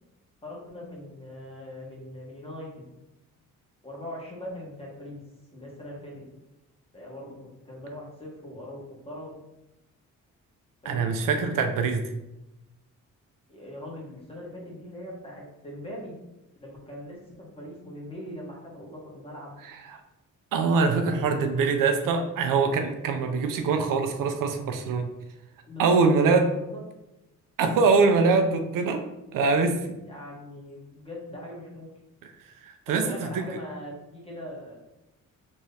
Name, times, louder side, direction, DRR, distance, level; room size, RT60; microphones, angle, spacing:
voice 1, 0.4-2.9 3.8-5.2 5.5-6.1 6.9-9.4 10.8-11.2 13.5-16.1 16.6-19.6 25.6-26.1 26.5-26.8 30.0-31.9 32.9-34.8, left 1 dB, 20° left, -4 dB, 1.3 m, -41 dB
voice 2, 10.9-12.0 19.9-20.0 20.5-25.1 25.8-26.5 27.6-29.0 29.3-29.9 32.6-33.0 33.3-33.4, right 4 dB, 75° right, 6 dB, 0.5 m, -23 dB
3.5 x 3.1 x 2.7 m, 0.93 s
cardioid pair, 110°, 32 cm